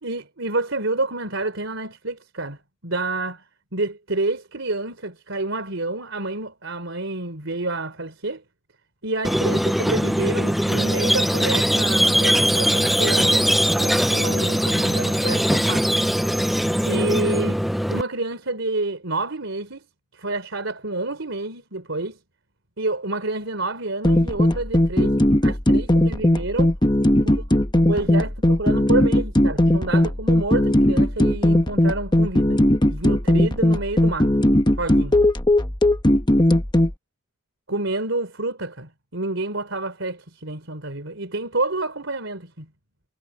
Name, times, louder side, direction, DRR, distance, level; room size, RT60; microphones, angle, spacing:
voice 1, 0.0-3.4 3.7-8.4 9.0-13.5 13.8-15.9 16.9-17.6 17.9-19.9 20.1-22.2 22.8-26.7 27.2-27.4 27.8-32.6 32.9-34.3 34.8-35.2 37.7-42.7, right 2 dB, 70° right, 3.5 m, -28 dB
Squeak, 9.2-18.0, equal, ahead, 0.5 m, -21 dB
sound 1, 24.0-36.9, left 1 dB, 20° left, 1.3 m, -18 dB
head